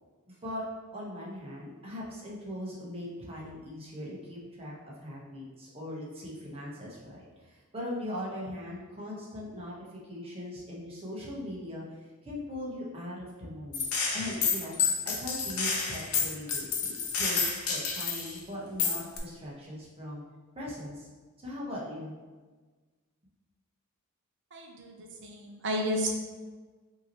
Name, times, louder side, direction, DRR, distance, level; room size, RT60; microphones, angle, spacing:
voice 1, 0.3-0.6 0.9-13.9 14.1-14.7 15.0-20.2 20.5-21.1 21.4-22.1, left 1 dB, 25° right, -5 dB, 1.0 m, -40 dB
Gunshot gunfire, 13.7-18.4 18.8-19.2, left 5 dB, 65° left, 0.7 m, -29 dB
voice 2, 24.5-26.1, equal, 55° right, 1 dB, 0.7 m, -32 dB
5.5 x 2.9 x 2.9 m, 1.3 s
head